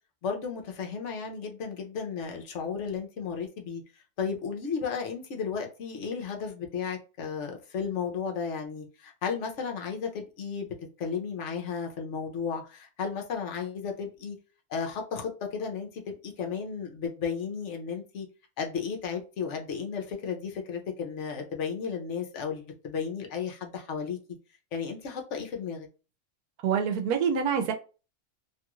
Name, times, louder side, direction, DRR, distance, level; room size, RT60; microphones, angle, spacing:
voice 1, 0.2-3.8 4.2-10.7 11.0-14.4 14.7-18.3 18.6-24.2 24.7-25.9, left 6 dB, 60° left, 3 dB, 1.0 m, -34 dB
voice 2, 26.6-27.7, right 7 dB, 90° right, 5 dB, 1.2 m, -26 dB
3.0 x 2.3 x 2.9 m, 0.32 s
omnidirectional pair, 1.6 m